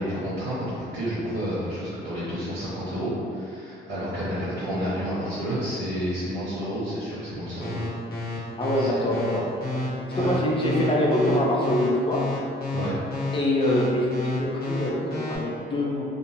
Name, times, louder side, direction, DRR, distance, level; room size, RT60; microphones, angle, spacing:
voice 1, 0.0-7.8 8.7-8.9 10.2-10.3 12.7-12.9, equal, 90° right, -11 dB, 0.8 m, -30 dB
sound 1, 7.6-15.4, left 2 dB, 50° left, 0.9 m, -29 dB
voice 2, 8.6-9.5 10.1-12.2 13.3-16.0, left 1 dB, 25° left, -3 dB, 0.5 m, -24 dB
2.5 x 2.1 x 2.9 m, 2.5 s
cardioid pair, 90°, 20 cm